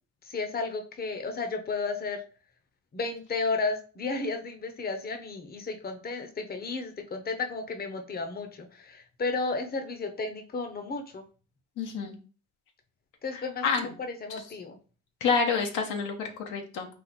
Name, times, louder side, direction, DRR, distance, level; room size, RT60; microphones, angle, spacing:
voice 1, 0.3-2.2 2.9-11.2 13.2-14.8, left 3 dB, 30° left, 6 dB, 0.8 m, -33 dB
voice 2, 11.8-12.1 13.3-13.9 15.2-16.9, left 5 dB, 90° left, 3 dB, 0.9 m, -28 dB
4.1 x 2.5 x 4.2 m, 0.37 s
cardioid pair, 90°, 30 cm